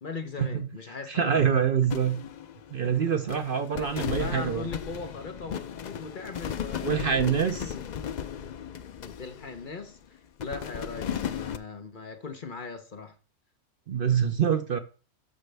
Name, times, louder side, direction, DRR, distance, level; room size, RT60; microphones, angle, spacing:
voice 1, 0.0-1.6 2.8-7.8 9.0-13.2, left 4 dB, 45° left, 0.9 m, -40 dB
voice 2, 1.1-2.2 2.7-4.7 6.8-7.7 13.9-14.8, right 7 dB, 55° right, 0.7 m, -25 dB
sound 1, 1.9-3.0 3.3-10.0 10.4-11.6, left 8 dB, 65° left, 0.4 m, -36 dB
12.5 x 5.2 x 3.3 m
omnidirectional pair, 1.3 m